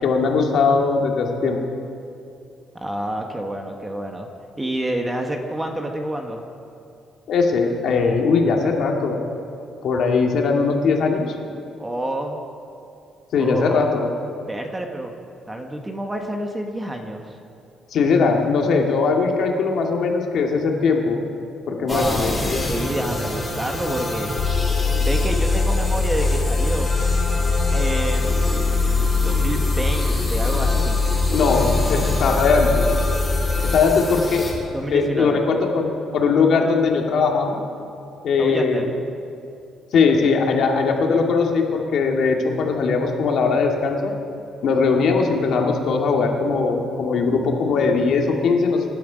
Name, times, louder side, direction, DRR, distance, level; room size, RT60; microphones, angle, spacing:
voice 1, 0.0-1.6 7.3-9.2 9.8-11.4 13.3-14.1 17.9-21.2 21.7-22.6 31.3-32.9 33.7-34.4 34.9-37.6 38.2-38.9 39.9-44.1 44.6-48.8, left 4 dB, 60° left, 1 dB, 2.0 m, -20 dB
voice 2, 2.7-4.3 4.6-6.4 11.8-12.4 13.3-13.9 14.5-15.1 15.5-17.4 21.7-24.3 25.0-26.9 27.7-31.0 34.7-35.4 38.4-38.9, right 1 dB, 10° right, 3 dB, 1.2 m, -28 dB
sound 1, 21.9-34.5, left 1 dB, 15° left, 3.6 m, -28 dB
sound 2, 24.4-33.8, left 4 dB, 75° left, 3.5 m, -22 dB
24.0 x 11.5 x 5.1 m, 2.5 s
cardioid pair, 150°, 0 cm